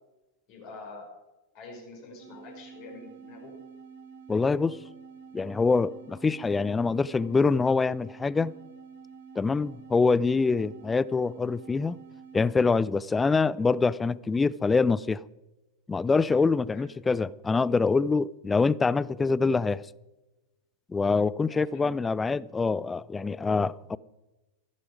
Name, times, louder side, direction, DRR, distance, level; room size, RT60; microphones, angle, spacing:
voice 1, 0.5-1.1 1.5-3.5 13.6-13.7 16.7-16.9 21.5-22.1, left 3 dB, 45° left, 5.6 m, -46 dB
sound 1, 2.2-12.6, right 6 dB, 60° right, 2.0 m, -48 dB
voice 2, 4.3-4.8 5.3-8.5 9.4-12.0 12.3-15.2 15.9-19.8 20.9-24.0, left 4 dB, 15° left, 0.4 m, -25 dB
14.5 x 12.5 x 4.9 m
figure-of-eight pair, 90°, 0 cm